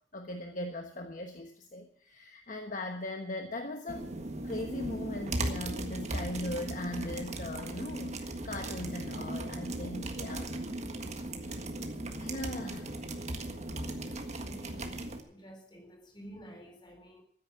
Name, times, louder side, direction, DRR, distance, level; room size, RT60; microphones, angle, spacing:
voice 1, 0.1-4.1 4.4-10.5 12.2-12.9, left 1 dB, 45° left, 1.3 m, -39 dB
sound 1, 3.9-15.2, right 1 dB, 40° right, 1.6 m, -37 dB
voice 2, 12.6-13.1 13.5-14.9 15.3-17.2, equal, 25° left, 3.8 m, -52 dB
14.5 x 9.8 x 7.1 m
head